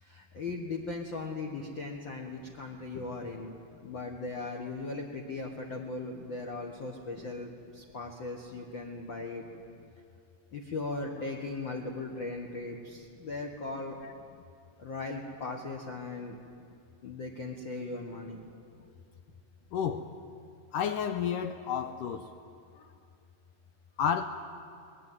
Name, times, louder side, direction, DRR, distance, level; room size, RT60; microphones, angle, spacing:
voice 1, 0.0-3.5 3.8-9.4 10.5-14.0 14.8-16.4 17.0-18.5, left 3 dB, 60° left, 1 dB, 1.3 m, -38 dB
voice 2, 19.7-20.1 20.7-22.3 24.0-24.2, left 8 dB, 80° left, 8 dB, 1.9 m, -30 dB
24.0 x 20.0 x 9.3 m, 2.5 s
omnidirectional pair, 4.5 m